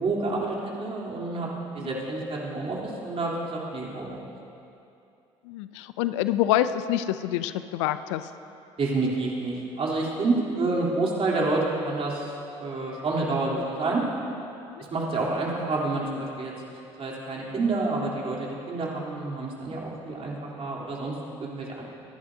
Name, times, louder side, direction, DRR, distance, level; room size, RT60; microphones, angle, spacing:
voice 1, 0.0-1.5 1.7-4.2 8.8-12.3 12.6-14.0 14.8-16.5 17.0-21.1 21.4-21.8, right 3 dB, 40° right, -4 dB, 3.4 m, -28 dB
voice 2, 5.4-8.3 14.8-14.9, left 12 dB, 75° left, 13 dB, 0.5 m, -26 dB
25.0 x 11.0 x 2.8 m, 2.7 s
hypercardioid pair, 60°, 15 cm